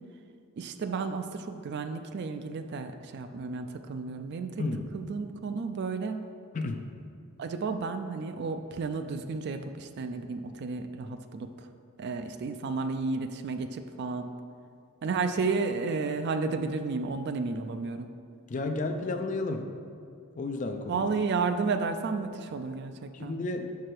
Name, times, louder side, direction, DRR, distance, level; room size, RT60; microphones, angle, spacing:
voice 1, 0.6-4.6 4.9-6.3 7.4-11.7 12.0-14.3 15.0-18.1 20.9-23.4, right 4 dB, 50° right, 8 dB, 0.3 m, -32 dB
voice 2, 4.6-4.9 6.5-6.9 18.5-19.7 20.4-21.1 23.1-23.8, left 2 dB, 35° left, 6 dB, 0.4 m, -32 dB
5.8 x 4.7 x 4.6 m, 2.4 s
head